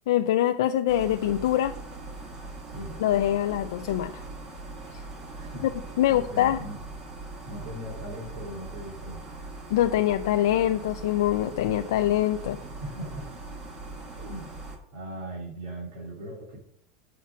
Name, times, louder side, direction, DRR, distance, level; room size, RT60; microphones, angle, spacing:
voice 1, 0.1-1.7 3.0-4.1 6.0-6.6 9.7-12.6, left 12 dB, 90° left, 7 dB, 0.4 m, -24 dB
sound 1, 0.9-14.8, right 2 dB, 25° right, 1.3 m, -41 dB
voice 2, 2.7-3.0 5.3-5.7 6.1-6.8 7.5-9.2 12.6-13.3 14.2-14.5 14.9-16.6, right 1 dB, 75° right, -3 dB, 2.5 m, -39 dB
6.0 x 5.9 x 5.9 m, 0.68 s
supercardioid pair, 160°, 2 cm